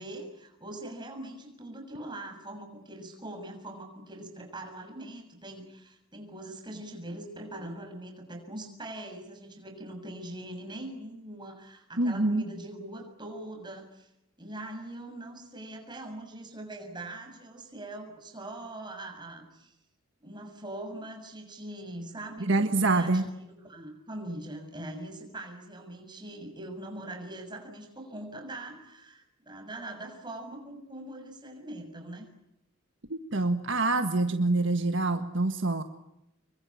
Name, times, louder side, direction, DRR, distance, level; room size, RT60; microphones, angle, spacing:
voice 1, 0.0-14.1 14.4-19.7 20.2-23.3 23.6-32.3, right 1 dB, 20° right, 4 dB, 6.9 m, -42 dB
voice 2, 12.0-12.4 22.5-23.2 33.1-35.8, right 2 dB, 65° right, 7 dB, 1.6 m, -26 dB
27.0 x 23.5 x 8.6 m, 0.84 s
head